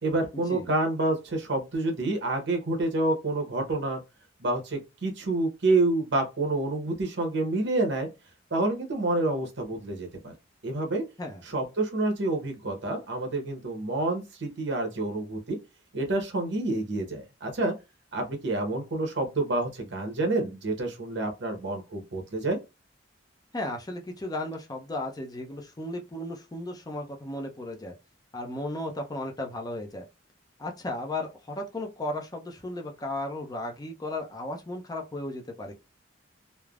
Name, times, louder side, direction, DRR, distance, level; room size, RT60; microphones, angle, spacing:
voice 1, 0.0-4.0 4.4-8.1 8.5-10.3 10.6-11.0 11.4-15.6 15.9-17.7 18.1-22.6, right 2 dB, 65° right, 0.9 m, -28 dB
voice 2, 23.5-27.9 28.3-30.1 30.6-35.7, left 1 dB, 20° left, 0.6 m, -35 dB
3.3 x 2.0 x 2.4 m
head